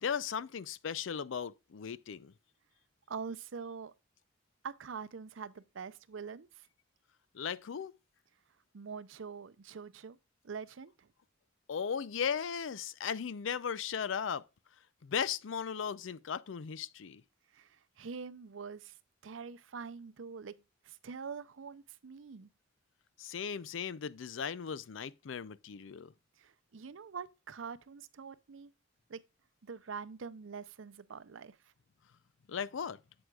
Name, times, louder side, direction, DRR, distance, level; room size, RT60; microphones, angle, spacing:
voice 1, 0.0-2.3 7.3-7.9 11.7-14.4 15.0-17.2 23.2-26.1 32.5-33.0, left 7 dB, 70° left, 0.5 m, -37 dB
voice 2, 3.1-3.9 4.6-6.7 8.7-10.2 10.4-11.1 17.5-19.0 19.2-22.5 26.4-28.7 29.1-29.2 29.6-31.7, right 5 dB, 75° right, 0.6 m, -45 dB
7.9 x 7.8 x 2.3 m
head